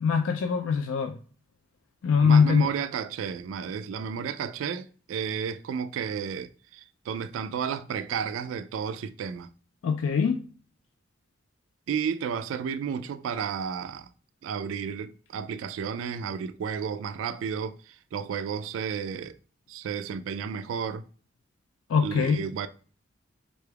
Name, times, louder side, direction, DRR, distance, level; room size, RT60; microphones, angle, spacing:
voice 1, 0.0-1.2 2.0-2.7 9.8-10.4 21.9-22.4, left 6 dB, 80° left, 0.3 m, -22 dB
voice 2, 2.2-9.5 11.9-14.1 14.4-19.4 19.7-21.0 22.0-22.7, right 7 dB, 80° right, 0.3 m, -32 dB
3.7 x 3.3 x 2.2 m
head